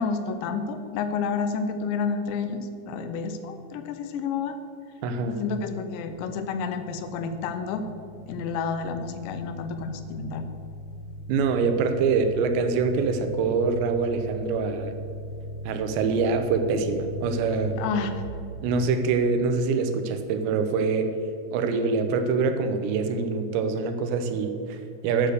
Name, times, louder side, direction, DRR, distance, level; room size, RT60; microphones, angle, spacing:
voice 1, 0.0-4.6 5.3-7.8 8.3-10.5 17.8-18.1, left 5 dB, 90° left, 8 dB, 3.0 m, -30 dB
voice 2, 5.0-5.4 11.3-14.9 15.7-17.8 18.6-21.1 21.5-25.3, right 4 dB, 85° right, 8 dB, 3.0 m, -25 dB
sound 1, 6.5-18.3, equal, 75° left, 2.3 m, -39 dB
9.7 x 6.7 x 6.6 m, 2.5 s
omnidirectional pair, 5.0 m